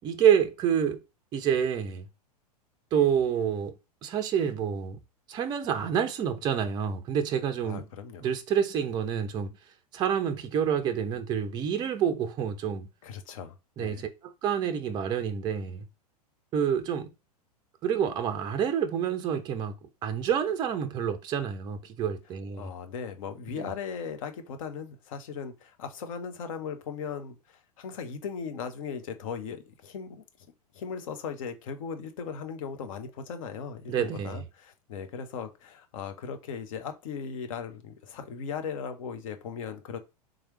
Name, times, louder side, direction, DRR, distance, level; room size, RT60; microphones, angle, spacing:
voice 1, 0.0-1.0 1.3-2.1 2.9-3.7 4.0-5.0 5.3-7.9 8.2-9.5 9.9-12.9 13.8-14.1 14.4-15.8 16.5-17.1 17.8-19.7 20.0-22.7 23.5-23.7 33.9-34.4, right 8 dB, 20° right, 0.4 m, -28 dB
voice 2, 7.6-8.3 13.0-14.0 22.6-30.2 30.7-40.0, left 6 dB, 55° left, 0.8 m, -38 dB
3.6 x 3.2 x 3.1 m
figure-of-eight pair, 95°, 21 cm